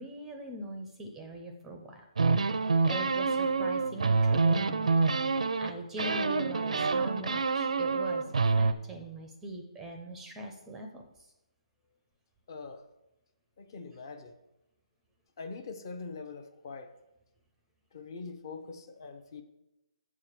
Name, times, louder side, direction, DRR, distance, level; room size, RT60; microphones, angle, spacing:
voice 1, 0.0-2.0 2.6-4.9 5.6-11.0, right 2 dB, 5° right, 3 dB, 0.6 m, -41 dB
sound 1, 2.2-5.7 6.0-8.7, right 4 dB, 85° right, 0.6 m, -27 dB
voice 2, 12.5-12.8 13.6-14.3 15.4-16.9 17.9-19.4, left 4 dB, 35° left, 8 dB, 0.8 m, -43 dB
7.9 x 4.9 x 7.4 m, 0.93 s
hypercardioid pair, 170°, 4 cm